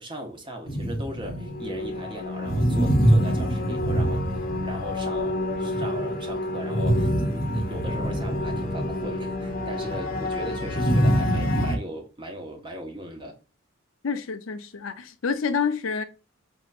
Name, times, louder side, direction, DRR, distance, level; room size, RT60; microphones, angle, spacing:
voice 1, 0.0-4.2 4.6-13.4, equal, 25° right, 1.1 m, -38 dB
sound 1, 0.7-11.8, equal, 45° left, 0.9 m, -25 dB
voice 2, 14.0-16.0, left 5 dB, 80° left, 0.6 m, -28 dB
5.5 x 2.9 x 2.4 m
head